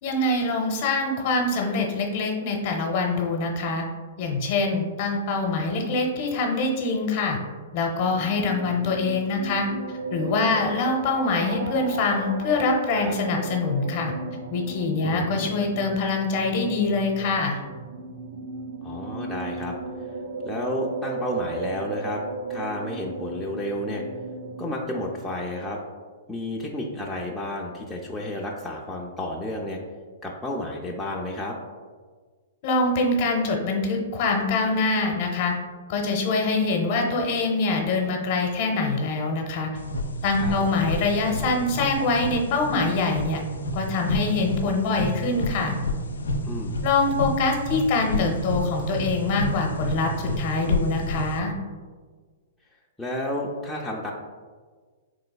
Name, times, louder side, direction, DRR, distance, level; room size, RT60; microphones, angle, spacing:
voice 1, 0.0-3.8 4.2-7.4 7.7-9.7 10.1-14.1 14.5-17.6 32.6-35.5 35.9-39.7 40.2-43.4 43.7-45.7 46.8-51.5, left 3 dB, 50° left, 2 dB, 0.7 m, -24 dB
sound 1, 7.9-25.2, right 3 dB, 75° right, 0.5 m, -35 dB
voice 2, 18.8-19.7 20.5-22.2 22.5-24.0 24.6-25.8 26.3-29.8 30.2-31.6 40.4-40.7 46.4-46.8 53.0-54.1, left 1 dB, 5° left, -4 dB, 0.3 m, -31 dB
sound 2, 39.8-51.4, equal, 85° left, 0.3 m, -30 dB
3.8 x 3.1 x 2.3 m, 1.5 s
hypercardioid pair, 125°, 0 cm